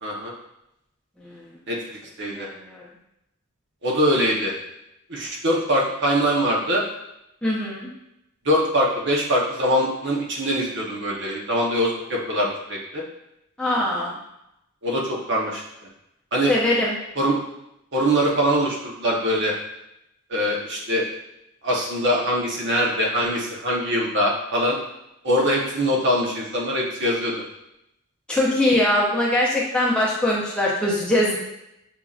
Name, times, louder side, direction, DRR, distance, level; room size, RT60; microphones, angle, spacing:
voice 1, 0.0-0.3 1.7-2.5 3.8-4.5 5.1-6.8 8.4-13.0 14.8-15.6 16.3-16.5 17.2-17.4 17.9-19.5 20.3-21.1 21.6-24.8 25.2-27.4, equal, 55° right, -3 dB, 1.0 m, -23 dB
voice 2, 1.2-1.6 2.3-2.8 7.4-7.9 13.6-14.2 16.5-16.9 28.3-31.4, left 1 dB, 5° left, -6 dB, 0.7 m, -22 dB
6.9 x 2.8 x 2.4 m, 0.84 s
head